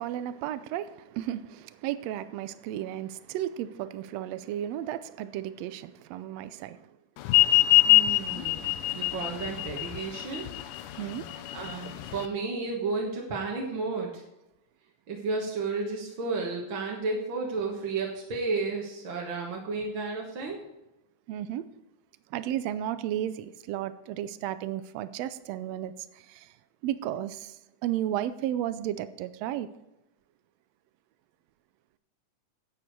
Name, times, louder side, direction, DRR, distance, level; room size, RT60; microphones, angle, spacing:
voice 1, 0.0-6.9 11.0-11.3 21.3-21.6 22.3-26.5 26.8-29.7, right 12 dB, 80° right, 1.5 m, -34 dB
sound 1, 7.3-12.3, left 17 dB, 85° left, 2.3 m, -23 dB
voice 2, 7.9-10.5 11.5-14.2 15.1-20.6, right 3 dB, 50° right, 1.8 m, -32 dB
11.5 x 8.6 x 4.6 m
omnidirectional pair, 3.6 m